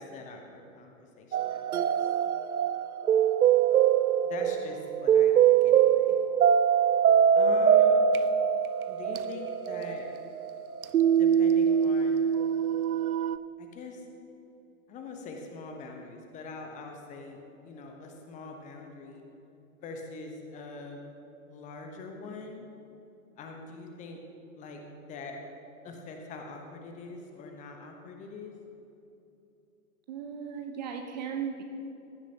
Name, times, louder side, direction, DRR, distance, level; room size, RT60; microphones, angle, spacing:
voice 1, 0.0-2.1 4.2-5.3 5.6-6.1 7.3-8.0 8.9-10.1 11.0-12.3 13.6-14.0 14.9-19.2 19.7-21.0 21.5-22.7 23.4-24.2 24.6-24.8 25.1-25.4 25.8-28.5, left 3 dB, 15° left, 3 dB, 1.0 m, -43 dB
sound 1, 1.3-13.4, right 8 dB, 75° right, 0.5 m, -23 dB
voice 2, 30.1-31.6, right 7 dB, 30° right, 5 dB, 0.6 m, -36 dB
15.5 x 11.5 x 2.9 m, 2.9 s
figure-of-eight pair, 115°, 44 cm